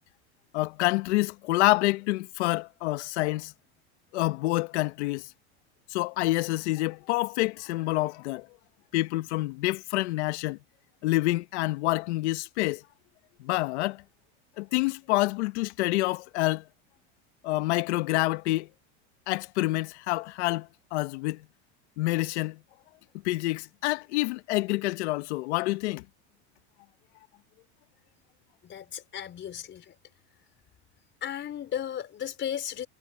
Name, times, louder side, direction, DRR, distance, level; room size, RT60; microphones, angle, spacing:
voice 1, 0.5-3.5 4.1-5.3 5.9-8.5 8.9-10.6 11.0-12.8 13.4-14.0 14.6-16.6 17.4-18.7 19.3-21.4 22.0-22.6 23.2-26.0, left 19 dB, 75° left, 1.3 m, -27 dB
voice 2, 28.6-29.9 31.2-32.9, left 9 dB, 35° left, 5.1 m, -35 dB
supercardioid pair, 125°, 34 cm